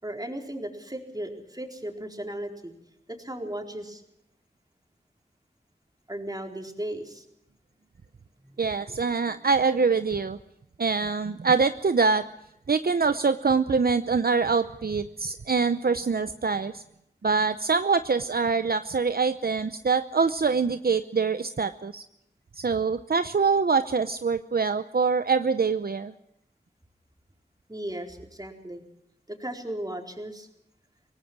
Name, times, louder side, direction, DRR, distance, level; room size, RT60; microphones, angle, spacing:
voice 1, 0.0-2.7 3.1-4.0 6.1-7.3 8.4-8.5 8.8-9.0 27.7-28.8 29.3-30.5, right 1 dB, 20° right, 2 dB, 4.2 m, -36 dB
voice 2, 8.6-10.4 10.8-12.3 12.7-16.8 17.2-22.0 22.6-26.1, right 5 dB, 60° right, 11 dB, 0.7 m, -24 dB
24.5 x 18.5 x 6.1 m, 0.81 s
wide cardioid pair, 50°, 18 cm